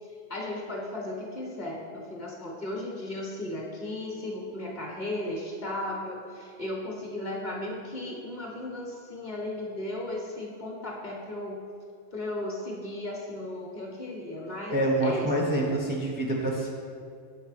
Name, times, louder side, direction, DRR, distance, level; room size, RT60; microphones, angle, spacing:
voice 1, 0.0-11.6 12.1-15.3 15.6-15.7, left 1 dB, 35° left, -1 dB, 1.1 m, -36 dB
voice 2, 14.7-16.7, right 1 dB, 10° right, -2 dB, 0.5 m, -26 dB
7.2 x 4.5 x 4.8 m, 2.3 s
omnidirectional pair, 1.4 m